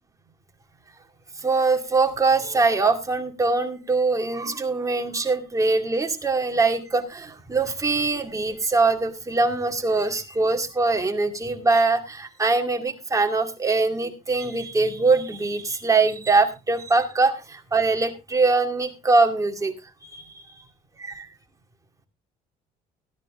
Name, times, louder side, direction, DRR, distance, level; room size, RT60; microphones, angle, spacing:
voice 1, 1.4-19.7 20.0-20.4 21.0-21.3, right 3 dB, 20° right, 5 dB, 2.2 m, -22 dB
15.0 x 10.5 x 3.6 m, 0.28 s
cardioid pair, 110°, 17 cm